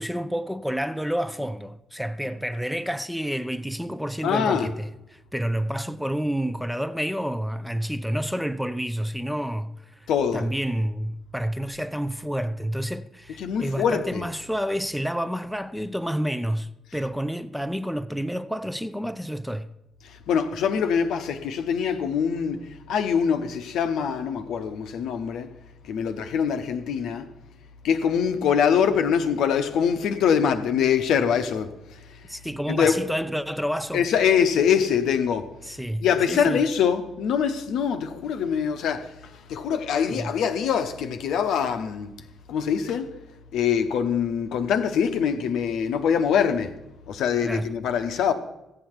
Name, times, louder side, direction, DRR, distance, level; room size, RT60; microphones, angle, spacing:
voice 1, 0.0-19.7 32.3-34.0 35.6-36.6 40.1-40.3 47.4-47.7, equal, ahead, 0.6 m, -29 dB
voice 2, 4.2-4.7 10.1-10.4 13.4-14.2 20.3-25.5 25.9-27.3 27.8-31.7 32.7-33.0 33.9-35.5 36.0-39.1 39.5-42.1 42.5-43.1 43.5-46.7 47.1-48.3, left 7 dB, 60° left, 0.8 m, -23 dB
14.5 x 8.8 x 4.6 m
figure-of-eight pair, 40°, 0 cm